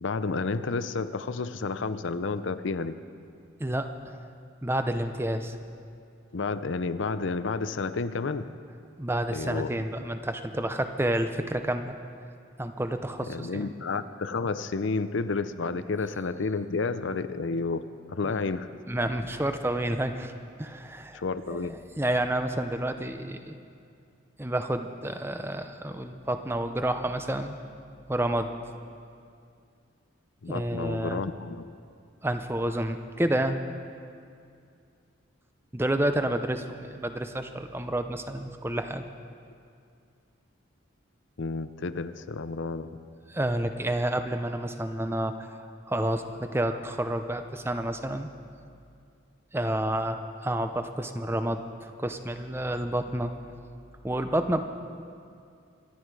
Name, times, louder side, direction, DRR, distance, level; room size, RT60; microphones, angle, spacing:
voice 1, 0.0-3.0 6.3-8.5 9.3-9.7 13.3-18.7 21.1-21.7 30.4-31.7 41.4-43.0, left 4 dB, 70° left, 12 dB, 0.6 m, -31 dB
voice 2, 3.6-4.3 4.6-5.6 9.0-11.9 12.6-13.7 18.9-20.3 20.6-21.2 21.5-23.5 24.4-27.6 28.1-28.5 30.5-31.2 32.2-33.6 35.7-39.0 43.3-48.3 49.5-53.3 54.0-54.6, right 1 dB, 10° right, 8 dB, 0.6 m, -29 dB
25.5 x 11.0 x 4.8 m, 2.4 s
head